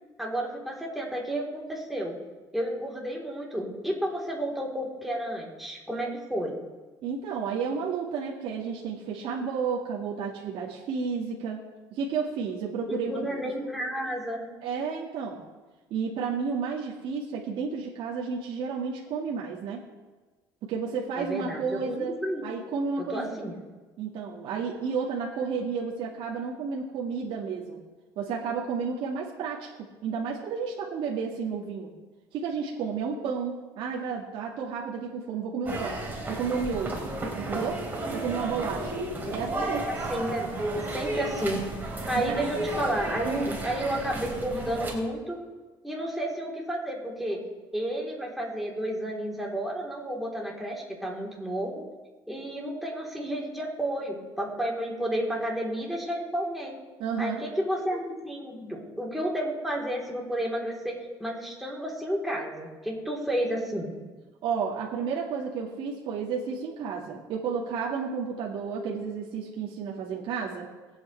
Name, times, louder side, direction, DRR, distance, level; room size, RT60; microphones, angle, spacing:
voice 1, 0.2-2.2 2.5-6.6 12.9-14.5 21.2-22.5 23.0-23.5 39.2-41.7 42.1-45.4 45.8-47.4 47.7-51.8 52.3-56.8 57.2-63.9, right 1 dB, ahead, -3 dB, 3.7 m, -31 dB
voice 2, 7.0-11.6 11.9-13.3 14.6-15.4 15.9-19.8 20.6-23.5 24.0-27.8 28.2-31.9 32.3-36.0 36.3-37.1 37.4-37.8 38.1-39.0 39.3-39.9 42.1-42.5 43.2-43.6 57.0-57.4 64.4-70.7, right 5 dB, 65° right, -3 dB, 1.9 m, -32 dB
sound 1, 35.7-44.9, right 2 dB, 20° right, 3.9 m, -33 dB
22.0 x 8.6 x 3.4 m, 1.3 s
supercardioid pair, 95°, 9 cm